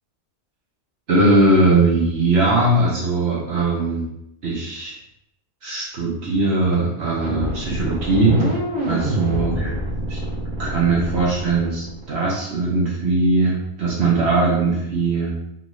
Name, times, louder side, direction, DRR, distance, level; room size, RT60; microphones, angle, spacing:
voice 1, 1.1-4.1 4.4-5.0 5.6-8.5 8.8-9.7 10.1-10.2 10.6-15.3, right 2 dB, 60° right, -5 dB, 1.0 m, -20 dB
sound 1, 7.2-12.1, right 1 dB, 85° right, 1.5 m, -25 dB
3.8 x 2.5 x 3.0 m, 0.79 s
omnidirectional pair, 1.3 m